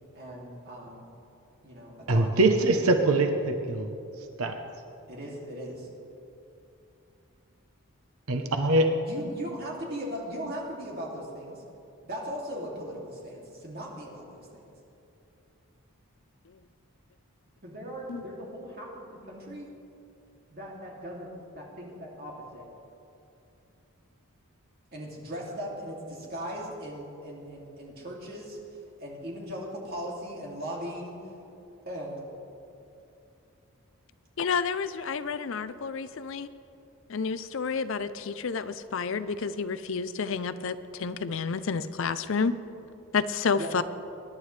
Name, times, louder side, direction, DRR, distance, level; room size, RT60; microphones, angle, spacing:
voice 1, 0.1-1.0 1.6-2.4 5.1-5.9 9.0-11.6 12.0-14.7 17.6-19.7 20.5-22.6 24.9-28.6 29.0-31.2 31.9-32.2 43.6-43.8, equal, 45° right, -3 dB, 2.7 m, -38 dB
voice 2, 2.1-3.9 4.4-4.6 8.3-8.9, right 2 dB, 80° right, 5 dB, 0.9 m, -23 dB
voice 3, 34.4-36.5 37.1-42.5 43.1-43.8, left 5 dB, 60° left, 13 dB, 0.5 m, -30 dB
25.0 x 11.0 x 3.3 m, 2.7 s
head